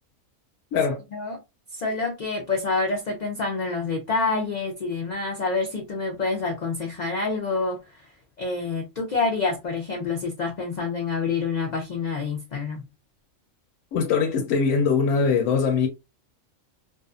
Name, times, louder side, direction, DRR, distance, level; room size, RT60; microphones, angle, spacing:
voice 1, 0.7-1.0 13.9-15.9, left 5 dB, 80° left, 1.0 m, -22 dB
voice 2, 1.7-8.1 8.4-12.8, left 4 dB, 60° left, 0.4 m, -27 dB
2.5 x 2.2 x 2.4 m
omnidirectional pair, 1.4 m